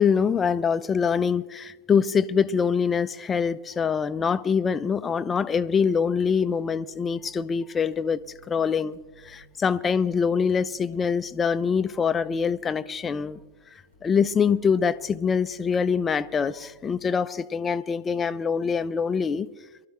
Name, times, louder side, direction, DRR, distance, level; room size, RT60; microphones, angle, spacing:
voice 1, 0.0-8.2 8.5-9.0 9.2-13.4 14.0-19.5, left 6 dB, 20° left, 0.5 m, -24 dB
sound 1, 5.7-17.0, right 2 dB, 75° right, 3.8 m, -57 dB
23.5 x 13.0 x 3.4 m
figure-of-eight pair, 90°, 0 cm